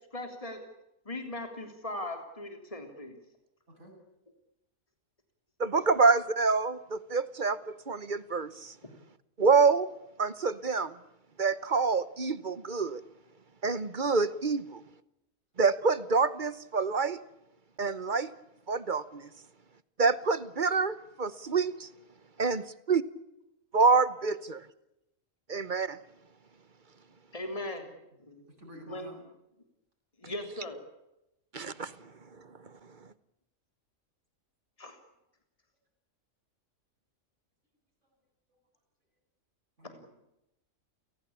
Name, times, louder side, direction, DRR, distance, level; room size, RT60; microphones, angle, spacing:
voice 1, 0.1-0.6 1.0-3.2 27.3-27.9 28.2-28.4 28.9-29.1 30.2-30.8 34.8-35.0, left 1 dB, 25° left, 5 dB, 3.4 m, -38 dB
voice 2, 5.6-8.7 9.4-9.9 10.2-10.9 11.4-13.0 13.6-14.8 15.6-17.2 17.8-18.3 18.7-19.3 20.0-21.9 22.4-22.6 22.9-23.0 23.7-24.6 25.5-26.0 31.5-31.9, right 4 dB, 40° right, 16 dB, 1.1 m, -26 dB
voice 3, 28.6-29.2 39.8-40.1, equal, 60° right, -1 dB, 8.4 m, -49 dB
29.5 x 18.0 x 8.6 m, 0.88 s
omnidirectional pair, 1.4 m